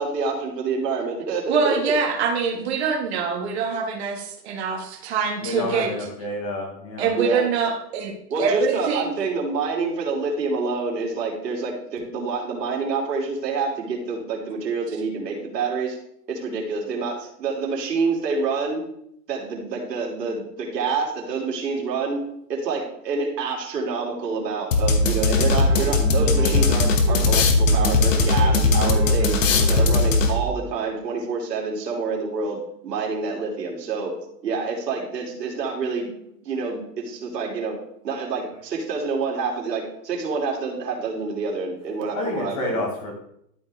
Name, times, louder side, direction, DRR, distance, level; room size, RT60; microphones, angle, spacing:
voice 1, 0.0-1.9 7.1-7.4 8.3-16.0 16.3-18.8 19.3-22.2 22.5-29.4 29.7-34.1 34.4-37.8 38.0-42.8, right 4 dB, 75° right, -1 dB, 3.2 m, -27 dB
voice 2, 1.5-5.9 7.0-9.1, right 6 dB, 40° right, 0 dB, 2.0 m, -24 dB
voice 3, 5.4-7.1 42.1-43.1, left 2 dB, 20° left, 1 dB, 1.1 m, -29 dB
sound 1, 24.7-30.6, left 3 dB, 50° left, 1.4 m, -19 dB
sound 2, 25.0-27.4 27.7-30.1, right 1 dB, 10° right, 2.3 m, -32 dB
12.5 x 4.8 x 3.7 m, 0.73 s
hypercardioid pair, 175°, 49 cm